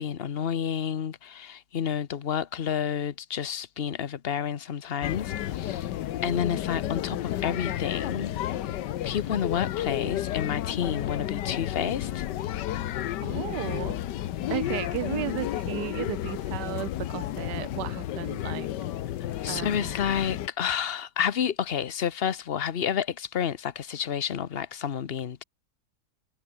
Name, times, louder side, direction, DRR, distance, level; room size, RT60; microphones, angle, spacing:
voice 1, 0.0-5.9 6.2-8.5 9.0-12.2 19.4-25.4, left 8 dB, 45° left, 0.9 m, -30 dB
sound 1, 5.0-20.5, left 12 dB, 85° left, 1.5 m, -32 dB
voice 2, 13.2-14.0 14.5-18.7 19.5-19.9, right 15 dB, 90° right, 1.2 m, -34 dB
omnidirectional pair, 1.8 m